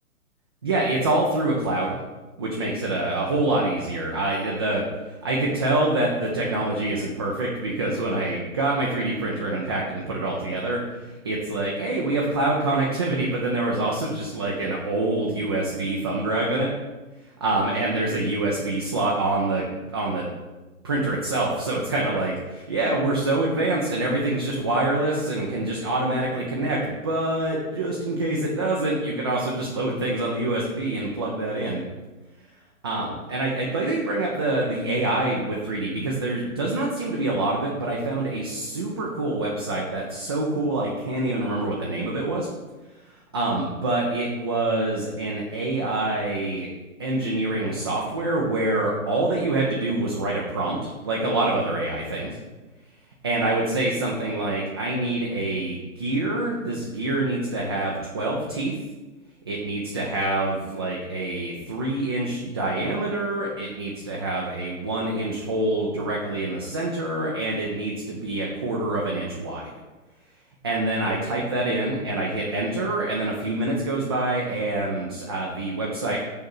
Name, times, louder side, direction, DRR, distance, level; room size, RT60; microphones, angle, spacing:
voice 1, 0.6-2.0 2.4-4.9 5.2-16.7 17.4-19.7 19.9-20.4 20.8-31.8 32.8-42.5 43.3-46.7 47.0-52.4 53.2-58.7 59.5-69.7 70.6-76.2, right 2 dB, 20° right, -3 dB, 0.4 m, -26 dB
6.6 x 4.2 x 6.2 m, 1.2 s
hypercardioid pair, 140°, 44 cm